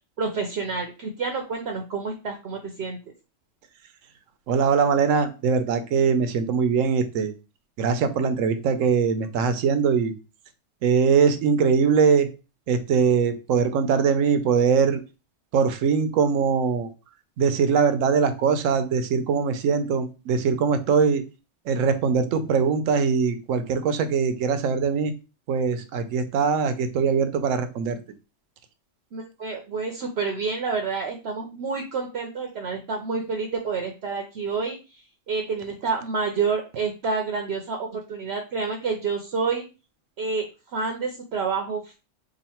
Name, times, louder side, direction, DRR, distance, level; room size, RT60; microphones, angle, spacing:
voice 1, 0.2-3.0 29.1-34.8 35.3-39.6 40.2-40.5 40.7-42.0, right 4 dB, 60° right, 3 dB, 0.8 m, -28 dB
voice 2, 4.5-7.3 7.8-10.1 10.8-12.3 12.7-15.0 15.5-16.9 17.4-21.2 21.7-25.1 25.5-28.0, right 6 dB, 85° right, 10 dB, 1.0 m, -22 dB
2.9 x 2.5 x 4.2 m, 0.31 s
omnidirectional pair, 1.3 m